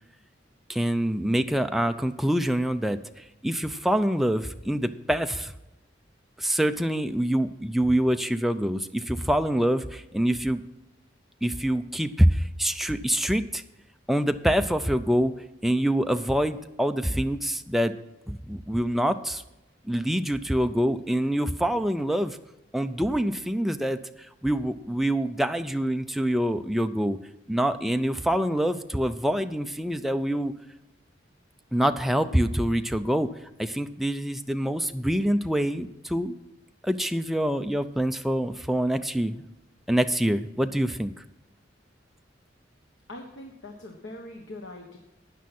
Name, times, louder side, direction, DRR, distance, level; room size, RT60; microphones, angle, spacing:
voice 1, 0.7-3.0 3.4-5.5 6.4-10.6 11.4-13.6 14.1-15.3 15.6-17.9 18.3-19.4 19.9-22.4 22.7-24.0 24.4-27.2 27.5-30.5 31.7-33.3 33.6-36.3 36.8-39.4 39.9-41.1, equal, ahead, 7 dB, 0.5 m, -25 dB
voice 2, 43.1-45.0, left 1 dB, 80° left, 2 dB, 1.3 m, -42 dB
12.5 x 9.4 x 4.3 m, 0.96 s
head